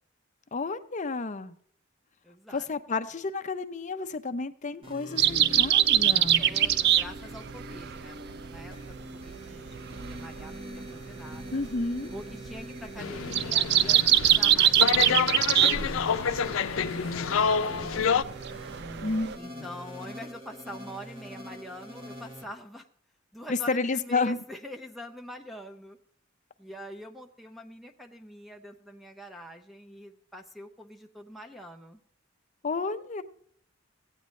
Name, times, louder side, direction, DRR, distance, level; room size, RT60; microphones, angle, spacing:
voice 1, 0.5-1.5 2.5-6.5 11.5-12.1 19.0-19.7 23.5-24.4 32.6-33.2, left 3 dB, 40° left, 9 dB, 0.6 m, -31 dB
voice 2, 2.2-2.7 6.4-8.2 8.4-11.6 12.1-18.5 19.3-22.9 23.3-26.0 26.6-32.0, equal, ahead, 4 dB, 0.6 m, -45 dB
sound 1, 4.8-22.4, equal, 30° right, 1.5 m, -43 dB
sound 2, 5.2-19.4, right 11 dB, 55° right, 0.4 m, -25 dB
sound 3, 13.0-18.2, left 6 dB, 85° left, 0.5 m, -28 dB
16.0 x 9.2 x 3.2 m, 0.62 s
head